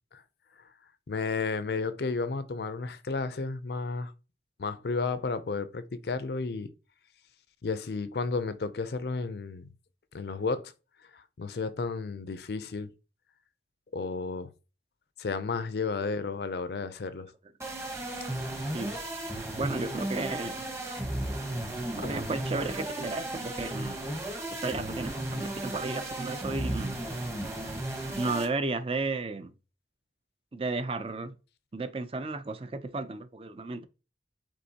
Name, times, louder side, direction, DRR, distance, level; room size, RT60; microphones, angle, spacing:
voice 1, 1.1-4.1 4.6-6.7 7.6-9.7 10.1-10.7 11.1-12.9 13.9-14.5 15.2-17.3 22.0-22.2, left 4 dB, 65° left, 0.5 m, -32 dB
sound 1, 17.6-28.5, right 1 dB, 15° right, 1.0 m, -35 dB
voice 2, 18.6-19.0 19.6-20.7 21.9-24.0 24.5-27.0 28.2-29.5 30.5-31.3 31.7-33.8, right 3 dB, 30° right, 0.5 m, -33 dB
5.3 x 3.6 x 2.8 m
head